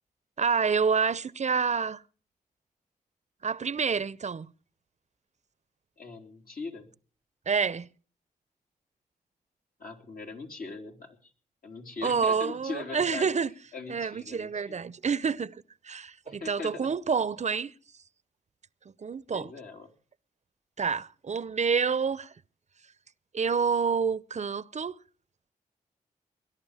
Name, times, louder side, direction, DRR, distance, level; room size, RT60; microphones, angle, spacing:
voice 1, 0.4-2.0 3.4-4.5 7.5-7.9 12.0-13.5 13.9-17.7 19.0-19.5 20.8-22.3 23.3-25.0, right 5 dB, 45° right, 0.7 m, -28 dB
voice 2, 6.0-6.9 9.8-11.3 11.6-13.3 13.7-14.8 16.2-16.9 19.3-19.9, left 4 dB, 65° left, 3.4 m, -40 dB
20.5 x 11.0 x 4.9 m
supercardioid pair, 45°, 16 cm